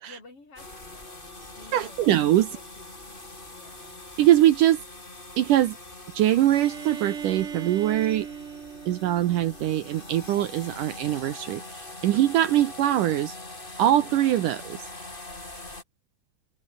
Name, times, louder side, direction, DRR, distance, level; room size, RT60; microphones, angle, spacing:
voice 1, 0.1-2.1 2.4-4.1, left 3 dB, 35° left, 6.7 m, -52 dB
sound 1, 0.6-15.8, left 2 dB, 15° left, 3.7 m, -43 dB
voice 2, 1.7-2.5 4.2-4.8 5.4-5.8 6.1-8.3 8.9-13.3 13.8-14.8, right 13 dB, 70° right, 2.4 m, -22 dB
Bowed string instrument, 6.5-10.2, right 7 dB, 45° right, 2.4 m, -39 dB
open air
omnidirectional pair, 4.2 m